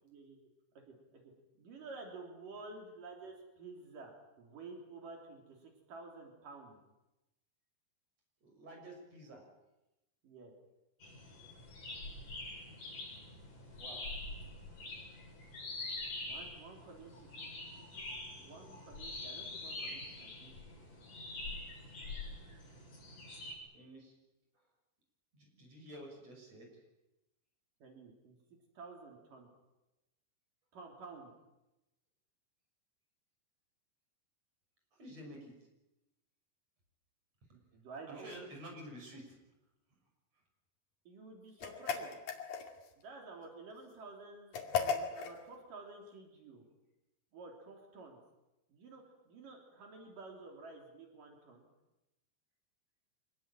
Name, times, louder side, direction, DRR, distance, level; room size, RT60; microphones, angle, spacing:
voice 1, 0.0-0.4 0.9-1.3 1.6-6.8 10.2-10.5 16.3-17.9 18.3-20.9 27.8-28.3 28.7-29.5 30.7-31.3 37.5-38.3 41.1-42.2 43.0-46.6 47.3-48.2 48.7-51.7, right 3 dB, 70° right, 1 dB, 5.0 m, -51 dB
voice 2, 8.4-9.4 13.8-14.1 23.7-24.1 25.3-26.7 35.0-35.5 38.1-39.4, right 1 dB, 45° right, 2 dB, 7.6 m, -50 dB
sound 1, 11.0-23.6, left 2 dB, 65° left, 8.5 m, -45 dB
sound 2, 41.6-42.9 44.5-45.4, left 6 dB, 85° left, 4.2 m, -35 dB
25.5 x 20.0 x 9.0 m, 0.96 s
omnidirectional pair, 4.0 m